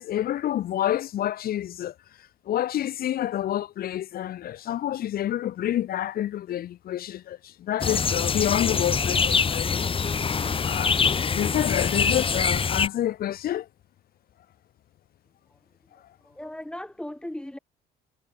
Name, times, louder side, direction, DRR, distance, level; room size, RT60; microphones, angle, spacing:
voice 1, 0.0-1.9 2.5-9.9 10.2-10.3 10.6-11.0 11.3-13.7, left 12 dB, 60° left, 2.9 m, -28 dB
sound 1, 7.8-12.9, left 5 dB, 30° left, 6.0 m, -24 dB
voice 2, 16.2-17.6, left 1 dB, 5° left, 5.6 m, -37 dB
cardioid pair, 110°, 17 cm